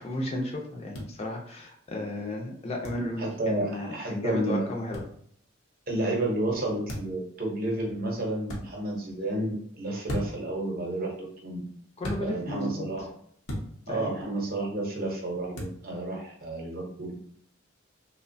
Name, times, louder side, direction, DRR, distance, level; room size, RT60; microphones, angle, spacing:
voice 1, 0.0-5.0 12.0-12.9 13.9-14.1, left 1 dB, 30° left, 0 dB, 0.4 m, -34 dB
sound 1, 0.9-1.1 2.8-3.0 4.9-5.1 6.9-7.2 8.4-8.6 10.1-10.5 12.0-12.2 13.5-13.7 15.5-15.8, equal, 85° left, 0.7 m, -34 dB
voice 2, 3.2-4.7 5.9-11.6 12.2-13.1 13.9-17.1, right 1 dB, 45° right, -1 dB, 0.7 m, -31 dB
2.8 x 2.1 x 2.6 m, 0.64 s
head